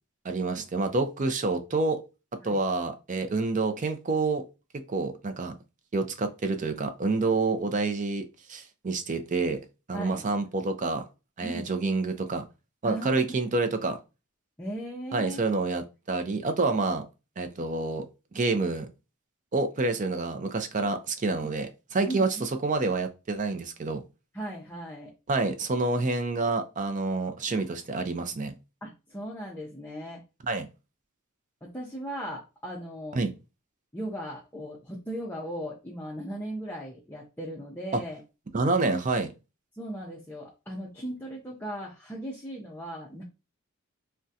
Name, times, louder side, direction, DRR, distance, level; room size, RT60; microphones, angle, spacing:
voice 1, 0.2-2.0 2.4-4.4 4.9-5.5 5.9-9.6 9.9-11.0 11.4-12.4 12.8-14.0 15.1-17.0 17.4-18.0 18.3-18.9 19.5-24.0 25.3-28.5 30.5-30.7 33.1-33.3 38.5-39.3, right 3 dB, 35° right, 0.5 m, -28 dB
voice 2, 14.6-15.4 21.4-21.5 22.1-22.4 24.3-25.1 28.8-30.2 31.6-33.2 33.9-38.2 39.7-43.2, right 1 dB, 10° left, 0.5 m, -37 dB
3.6 x 2.2 x 2.7 m
head